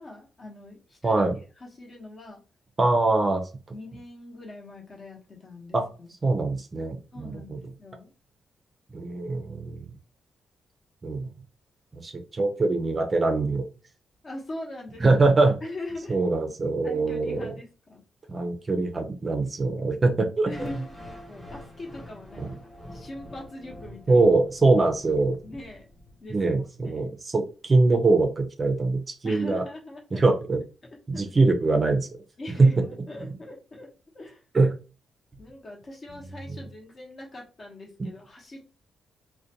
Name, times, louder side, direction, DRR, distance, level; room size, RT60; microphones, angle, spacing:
voice 1, 0.0-1.3 1.6-2.4 3.7-6.1 7.1-8.1 14.2-15.1 15.6-16.2 16.8-18.0 20.5-24.2 25.4-25.9 26.2-26.4 26.8-27.1 29.2-30.2 30.8-31.3 32.4-34.4 35.4-38.8, left 2 dB, 40° left, 0 dB, 0.8 m, -42 dB
voice 2, 1.0-1.3 2.8-3.4 5.7-5.8 6.2-7.6 8.9-9.9 11.0-11.3 12.0-13.6 15.0-15.6 16.1-17.5 18.3-20.5 22.4-22.5 24.1-25.4 26.3-29.6 30.1-30.6 31.1-32.1 32.6-32.7 34.5-34.7 38.0-38.1, right 3 dB, 30° right, 4 dB, 0.5 m, -23 dB
sound 1, 20.5-26.5, left 1 dB, 5° left, 1.0 m, -45 dB
2.5 x 2.1 x 2.8 m, 0.34 s
cardioid pair, 105°, 0 cm